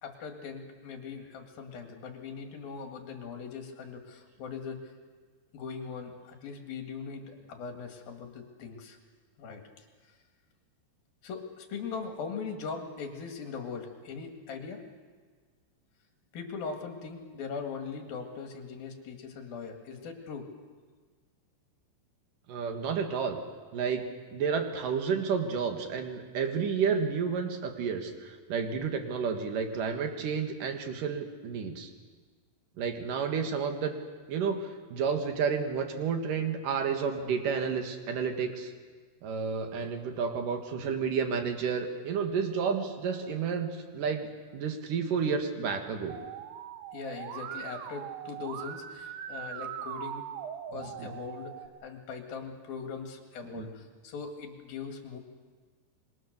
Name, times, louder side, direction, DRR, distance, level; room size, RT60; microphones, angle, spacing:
voice 1, 0.0-4.9 5.5-9.0 9.4-9.7 11.2-14.8 16.3-20.5 46.9-50.3 50.7-51.6 51.8-55.2, left 5 dB, 55° left, 3 dB, 3.2 m, -40 dB
voice 2, 22.5-23.4 23.7-24.1 24.3-31.9 32.8-34.0 34.3-38.7 39.2-46.2 51.0-51.1 53.5-53.7, right 6 dB, 60° right, 5 dB, 2.4 m, -31 dB
Musical instrument, 46.1-51.7, right 9 dB, 80° right, 3.7 m, -41 dB
26.5 x 22.5 x 6.7 m, 1.5 s
omnidirectional pair, 5.9 m